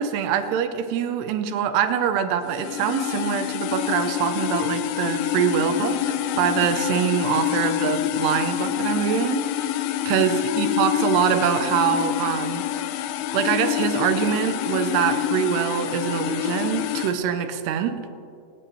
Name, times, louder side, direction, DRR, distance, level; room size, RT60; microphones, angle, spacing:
voice 1, 0.0-9.7 10.1-12.7 13.3-18.0, right 8 dB, 80° right, 9 dB, 2.8 m, -24 dB
sound 1, 2.5-17.1, left 12 dB, 85° left, 2.0 m, -26 dB
26.0 x 10.0 x 3.1 m, 2.5 s
omnidirectional pair, 4.7 m